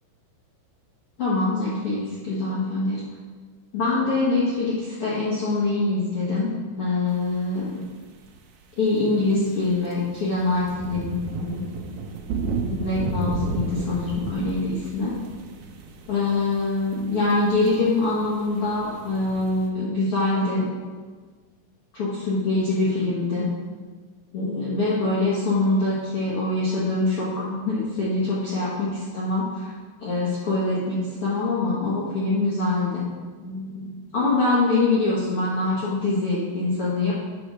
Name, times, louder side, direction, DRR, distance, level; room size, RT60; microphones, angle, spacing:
voice 1, 1.2-3.0 3.7-7.7 8.8-11.1 11.4-12.0 12.7-15.2 16.1-20.7 21.9-23.5 24.3-29.7 30.0-33.0 33.4-37.1, left 2 dB, 90° left, -8 dB, 1.2 m, -24 dB
sound 1, 8.1-8.3 9.6-19.7, right 3 dB, 80° right, 2.7 m, -32 dB
9.1 x 4.2 x 6.1 m, 1.4 s
omnidirectional pair, 4.8 m